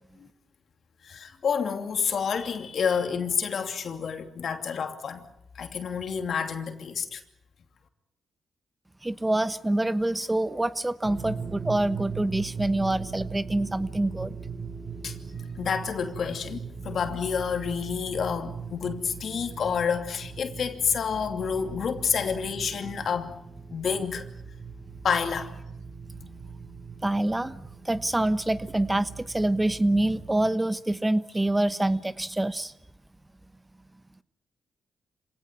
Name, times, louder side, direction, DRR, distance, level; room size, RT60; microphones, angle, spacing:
voice 1, 1.0-5.2 5.5-7.2 15.0-15.2 15.6-23.4 23.7-24.3 25.0-25.5, left 6 dB, 65° left, 2.7 m, -29 dB
voice 2, 9.0-14.3 27.0-32.7, right 1 dB, 15° right, 1.1 m, -26 dB
sound 1, 11.0-30.5, right 5 dB, 50° right, 3.8 m, -40 dB
26.5 x 18.0 x 9.2 m
cardioid pair, 60°, 0 cm